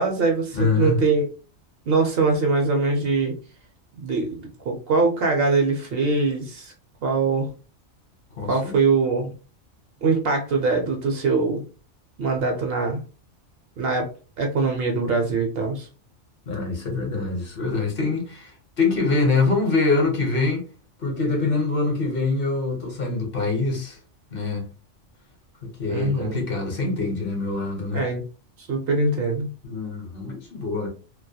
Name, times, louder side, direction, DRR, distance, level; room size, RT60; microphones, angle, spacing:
voice 1, 0.0-1.3 1.9-3.4 3.9-6.7 7.0-7.5 8.5-9.3 10.0-11.6 12.2-13.0 13.8-14.1 14.4-15.9 25.9-26.4 27.9-28.2 28.6-29.5, right 3 dB, 65° right, 0.7 m, -22 dB
voice 2, 0.5-1.0 8.4-8.7 16.5-20.6 21.0-24.0 24.3-24.7 25.8-28.0 29.6-30.9, left 3 dB, 55° left, 0.8 m, -24 dB
2.2 x 2.1 x 2.7 m
omnidirectional pair, 1.2 m